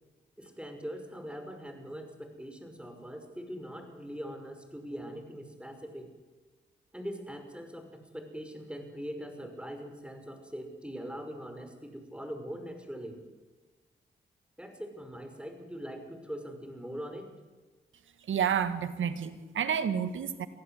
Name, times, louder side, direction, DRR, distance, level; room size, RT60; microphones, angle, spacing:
voice 1, 0.4-6.1 6.9-13.2 14.6-17.3, equal, 5° right, 6 dB, 5.8 m, -42 dB
voice 2, 18.3-20.5, right 8 dB, 75° right, 12 dB, 1.7 m, -30 dB
24.0 x 15.5 x 8.0 m, 1.3 s
supercardioid pair, 40°, 21 cm